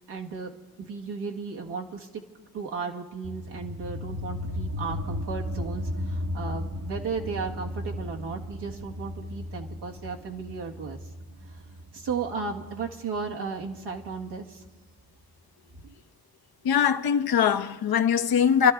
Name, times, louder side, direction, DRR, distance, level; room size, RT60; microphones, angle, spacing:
voice 1, 0.1-0.5 0.8-2.2 2.5-11.0 11.9-14.6 15.8-15.9, right 5 dB, 80° right, 1.8 m, -35 dB
sound 1, 3.2-14.3, left 1 dB, 50° right, 1.2 m, -36 dB
voice 2, 16.6-18.7, left 8 dB, 60° left, 1.0 m, -22 dB
28.5 x 12.0 x 3.7 m
supercardioid pair, 55°, 41 cm